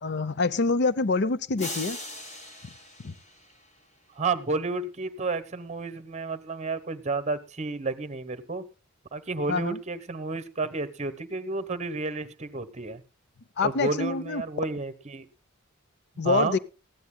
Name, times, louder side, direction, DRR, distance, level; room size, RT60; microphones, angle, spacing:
voice 1, 0.0-2.0 3.0-3.1 9.5-9.8 13.6-14.4 16.2-16.6, left 4 dB, 50° left, 0.6 m, -26 dB
sound 1, 1.6-3.9, left 1 dB, 30° left, 3.6 m, -39 dB
voice 2, 4.2-8.6 9.1-13.0 13.6-15.2 16.2-16.6, right 3 dB, 30° right, 1.1 m, -31 dB
20.0 x 14.5 x 2.2 m
head